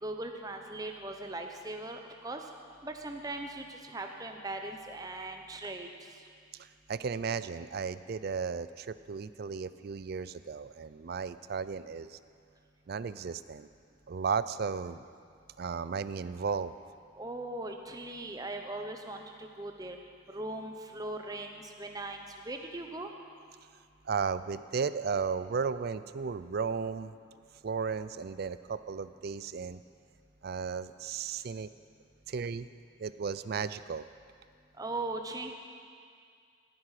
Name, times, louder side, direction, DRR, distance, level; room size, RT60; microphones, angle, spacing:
voice 1, 0.0-2.4 2.8-5.9 17.1-20.0 20.3-23.1 34.8-35.5, right 2 dB, 20° right, 4 dB, 0.8 m, -39 dB
voice 2, 6.9-12.2 12.9-13.7 14.1-15.1 15.6-16.7 24.1-27.1 27.6-29.8 30.4-31.7 32.3-32.7 33.0-34.1, right 5 dB, 50° right, 14 dB, 0.4 m, -34 dB
18.0 x 9.8 x 4.9 m, 2.2 s
head